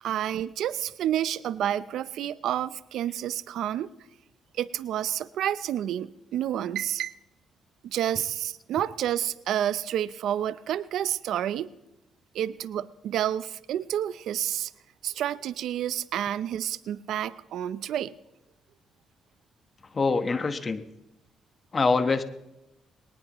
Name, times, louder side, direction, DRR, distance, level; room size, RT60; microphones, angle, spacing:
voice 1, 0.0-3.9 4.6-7.1 7.8-11.7 12.3-14.7 15.0-18.1, right 11 dB, 75° right, 16 dB, 0.5 m, -29 dB
voice 2, 19.9-20.8 21.7-22.2, left 4 dB, 35° left, 10 dB, 1.2 m, -24 dB
20.5 x 19.0 x 3.0 m, 0.92 s
cardioid pair, 90°, 0 cm